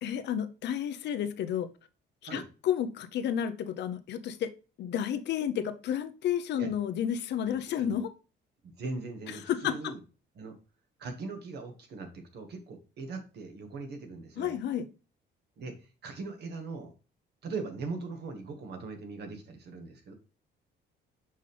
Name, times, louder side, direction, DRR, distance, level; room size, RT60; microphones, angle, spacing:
voice 1, 0.0-1.7 2.3-4.5 4.8-8.1 9.5-9.9 14.4-14.9, left 9 dB, 65° left, 0.7 m, -31 dB
voice 2, 8.6-10.0 10.3-10.6 11.0-14.6 15.6-16.9 17.4-20.1, right 3 dB, 60° right, 1.6 m, -40 dB
5.5 x 5.5 x 3.3 m
cardioid pair, 140°, 19 cm